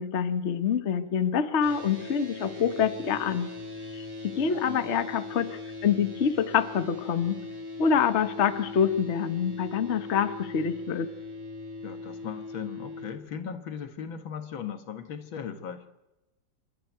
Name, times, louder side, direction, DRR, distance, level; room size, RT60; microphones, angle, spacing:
voice 1, 0.0-3.5 3.9-7.4 7.8-11.1, left 7 dB, 40° left, 11 dB, 1.2 m, -26 dB
sound 1, 1.6-13.1, left 2 dB, 10° right, 3.1 m, -40 dB
voice 2, 4.5-4.9 11.8-15.8, left 7 dB, 80° left, 9 dB, 2.2 m, -38 dB
26.0 x 12.0 x 9.1 m, 0.98 s
omnidirectional pair, 2.1 m